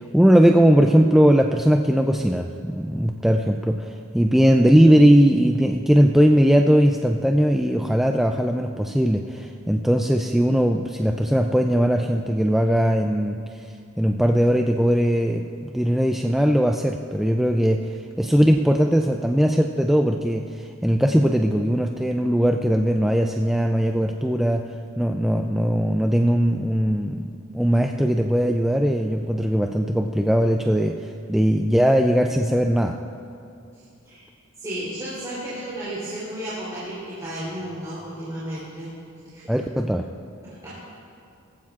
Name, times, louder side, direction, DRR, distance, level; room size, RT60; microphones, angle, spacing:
voice 1, 0.0-13.4 14.0-17.9 18.2-24.6 25.0-27.3 27.5-33.0 39.5-40.1, equal, ahead, 2 dB, 0.3 m, -19 dB
voice 2, 33.7-34.2 34.6-39.5 40.4-40.8, right 1 dB, 20° right, -11 dB, 3.3 m, -34 dB
20.5 x 14.5 x 2.5 m, 2.5 s
head